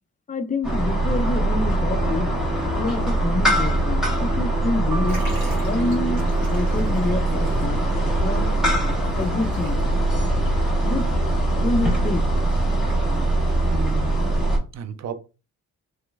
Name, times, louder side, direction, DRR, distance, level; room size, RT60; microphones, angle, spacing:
voice 1, 0.3-2.3 2.8-7.9 8.2-8.6 9.2-9.9 10.8-11.2 11.6-12.4, left 2 dB, 25° left, 0.4 m, -27 dB
sound 1, 0.6-14.6, right 1 dB, ahead, 1.6 m, -22 dB
sound 2, 4.9-7.0, right 3 dB, 85° right, 0.9 m, -39 dB
Liquid, 5.1-10.2 10.5-10.6 11.5-11.6, right 1 dB, 65° right, 1.8 m, -44 dB
voice 2, 13.6-14.4 14.7-15.1, right 8 dB, 50° right, 0.5 m, -33 dB
3.1 x 2.9 x 2.3 m
supercardioid pair, 55°, 37 cm